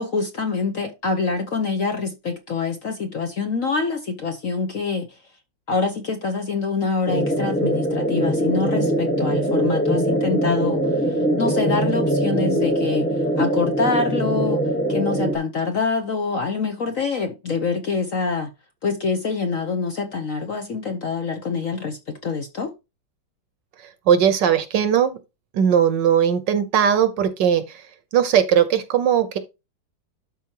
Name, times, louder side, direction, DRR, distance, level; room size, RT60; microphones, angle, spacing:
voice 1, 0.0-5.2 5.7-14.6 14.9-18.5 18.8-22.7, left 4 dB, 55° left, 1.0 m, -25 dB
sound 1, 7.1-15.4, right 1 dB, 5° left, 0.7 m, -22 dB
voice 2, 24.1-25.2 25.5-27.8 28.1-29.4, right 8 dB, 65° right, 1.4 m, -19 dB
12.0 x 4.4 x 2.9 m
omnidirectional pair, 2.3 m